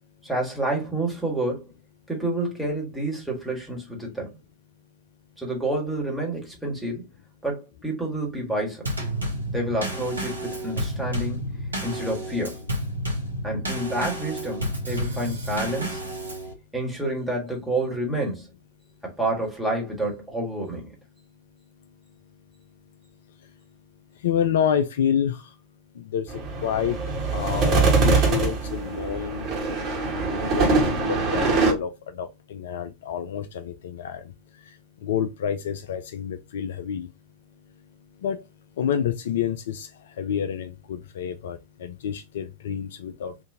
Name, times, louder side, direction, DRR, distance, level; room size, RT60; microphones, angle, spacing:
voice 1, 0.2-1.7 2.1-4.3 5.4-7.0 7.4-8.8 9.5-11.5 11.8-12.6 13.4-16.0 16.7-18.5 19.0-20.9, right 1 dB, ahead, 1.5 m, -29 dB
Drum kit / Snare drum / Bass drum, 8.9-16.5, equal, 80° right, 1.1 m, -30 dB
voice 2, 24.2-25.4 26.1-26.3 26.6-27.0 27.3-29.5 30.6-31.9 32.2-34.2 35.0-37.1 38.2-38.4 38.8-39.9 40.2-43.3, left 8 dB, 60° left, 0.3 m, -28 dB
sound 1, 26.3-31.7, right 3 dB, 35° right, 1.3 m, -23 dB
3.6 x 2.6 x 2.7 m
figure-of-eight pair, 90°, 0 cm